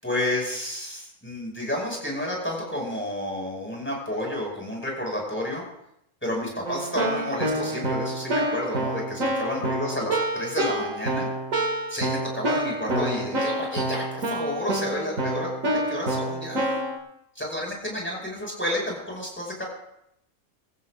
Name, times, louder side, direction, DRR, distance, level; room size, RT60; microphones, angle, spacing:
voice 1, 0.0-5.6 6.2-10.1 10.3-11.3 11.9-16.8 17.4-19.6, left 1 dB, 10° left, -2 dB, 5.5 m, -30 dB
Keyboard (musical), 6.7-17.0, right 1 dB, 80° right, 2.6 m, -28 dB
22.0 x 15.0 x 2.5 m, 0.78 s
omnidirectional pair, 1.4 m